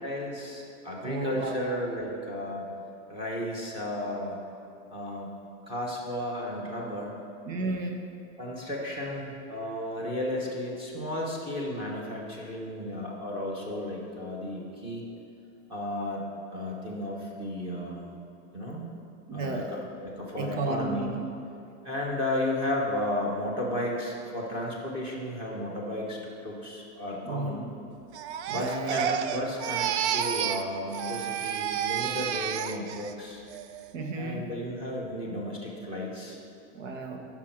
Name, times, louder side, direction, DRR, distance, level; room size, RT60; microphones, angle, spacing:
voice 1, 0.0-2.7 3.1-4.4 4.9-5.3 5.7-7.2 8.4-15.0 15.7-16.2 16.5-18.1 18.5-18.9 19.3-21.1 21.8-27.6 28.5-33.4 34.1-36.4, left 1 dB, 15° right, -2 dB, 1.3 m, -33 dB
voice 2, 1.0-1.6 7.4-7.9 19.3-19.7 20.4-21.2 27.2-27.7 28.5-29.1 33.9-34.5 36.7-37.2, right 2 dB, 90° right, 4 dB, 1.4 m, -33 dB
Crying sobbing, 28.1-30.7 30.9-33.1 33.5-33.9, right 9 dB, 65° right, 0.5 m, -30 dB
9.8 x 5.9 x 5.9 m, 2.8 s
supercardioid pair, 165°, 37 cm